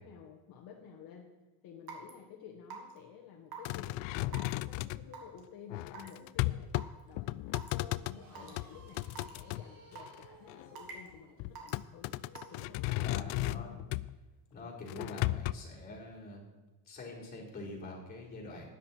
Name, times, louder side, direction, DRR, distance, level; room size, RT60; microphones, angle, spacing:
voice 1, 0.0-1.3 1.6-12.1 12.5-13.9, left 7 dB, 55° left, 1 dB, 1.5 m, -52 dB
Raindrop / Water tap faucet / Drip, 1.9-2.1 2.7-3.0 3.5-3.7 4.3-4.5 5.1-5.4 5.9-6.1 6.7-6.8 7.5-7.7 8.4-8.5 9.2-9.3 10.0-10.2 10.8-11.1 11.6-11.8 12.4-12.6, right 7 dB, 55° right, 2.6 m, -45 dB
sound 1, 3.6-5.1 5.7-6.9 7.2-8.2 8.6-9.6 10.1-10.7 11.4-14.1 14.9-15.5, left 18 dB, 85° left, 0.5 m, -35 dB
sound 2, 8.1-13.6, right 1 dB, 85° right, 5.0 m, -59 dB
voice 2, 13.0-13.8 14.5-16.4 16.9-18.7, left 2 dB, 20° left, -5 dB, 4.3 m, -45 dB
13.0 x 10.0 x 4.5 m, 1.1 s
cardioid pair, 150°, 45 cm